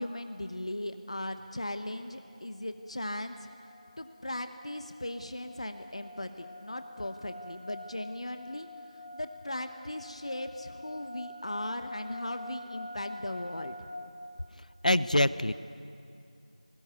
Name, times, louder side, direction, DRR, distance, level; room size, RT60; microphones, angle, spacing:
voice 1, 0.0-3.5 4.0-13.9, left 1 dB, 55° left, 9 dB, 1.0 m, -38 dB
sound 1, 2.1-2.5 2.9-14.0, left 1 dB, 35° right, 4.8 m, -47 dB
voice 2, 14.8-15.5, left 1 dB, 80° left, 15 dB, 0.8 m, -24 dB
20.5 x 19.5 x 9.4 m, 2.6 s
figure-of-eight pair, 175°, 4 cm